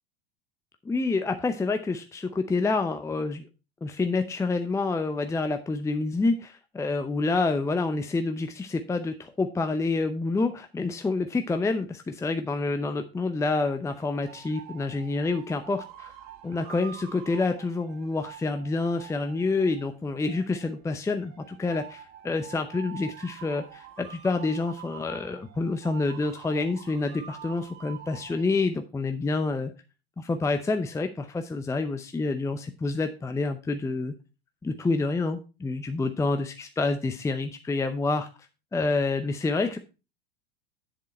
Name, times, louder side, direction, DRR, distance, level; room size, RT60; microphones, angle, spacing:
voice 1, 0.9-3.5 3.8-16.1 16.4-29.7 30.2-34.1 34.6-38.3 38.7-39.8, left 3 dB, 10° left, 7 dB, 0.6 m, -28 dB
sound 1, 13.9-28.4, right 10 dB, 55° right, 1.4 m, -47 dB
7.5 x 7.3 x 4.3 m, 0.30 s
hypercardioid pair, 85°, 31 cm